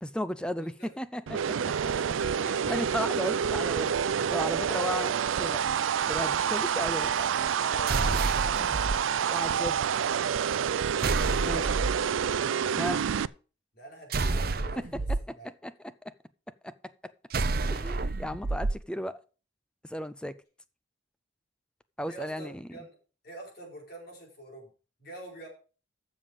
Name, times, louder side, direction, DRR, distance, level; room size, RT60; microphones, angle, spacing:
voice 1, 0.0-1.7 2.4-7.1 9.3-9.8 11.4-11.6 12.8-13.0 15.1-15.7 16.0-16.1 16.6-16.7 17.7-19.2 19.8-20.3 22.0-22.7, equal, 5° left, 0.4 m, -35 dB
sound 1, 1.3-13.3, right 7 dB, 85° right, 0.4 m, -28 dB
voice 2, 1.8-2.7 6.6-9.4 11.3-11.8 13.7-15.1 15.4-15.5 22.1-22.9 23.2-24.7 25.0-25.5, right 1 dB, 50° left, 4.9 m, -46 dB
sound 2, 7.9-9.0 11.0-12.0 14.1-15.2 17.3-18.8, right 3 dB, 50° right, 0.7 m, -29 dB
12.5 x 7.1 x 5.0 m
head